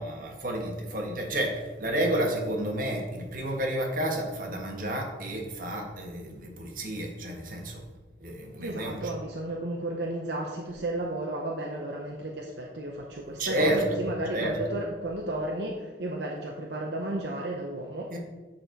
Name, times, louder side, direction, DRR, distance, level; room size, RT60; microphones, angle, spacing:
voice 1, 0.0-7.8 8.2-9.0 13.4-14.6 18.1-18.2, right 1 dB, 50° right, 1 dB, 1.3 m, -30 dB
voice 2, 8.6-18.1, right 1 dB, 70° right, -1 dB, 0.8 m, -33 dB
7.8 x 4.3 x 4.5 m, 1.2 s
head